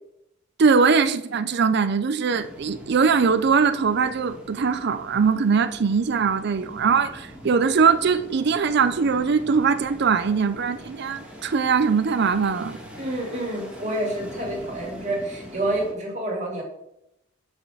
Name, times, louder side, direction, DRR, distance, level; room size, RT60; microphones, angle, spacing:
voice 1, 0.6-12.8, right 5 dB, 55° right, 0.5 m, -21 dB
sound 1, 2.3-15.9, equal, 5° right, 1.8 m, -43 dB
voice 2, 13.0-16.6, right 1 dB, 35° right, 2.5 m, -28 dB
7.5 x 5.2 x 4.9 m
head